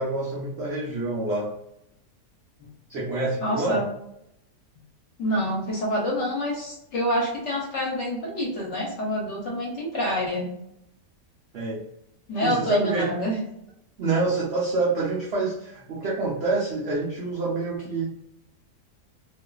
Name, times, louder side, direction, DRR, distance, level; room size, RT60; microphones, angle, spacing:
voice 1, 0.0-1.5 2.9-3.9 11.5-11.8 12.4-13.1 14.0-18.1, right 3 dB, 90° right, -4 dB, 0.5 m, -26 dB
voice 2, 3.4-3.8 5.2-10.5 12.3-13.4, equal, 55° left, -3 dB, 0.9 m, -27 dB
2.4 x 2.4 x 2.3 m, 0.80 s
omnidirectional pair, 1.8 m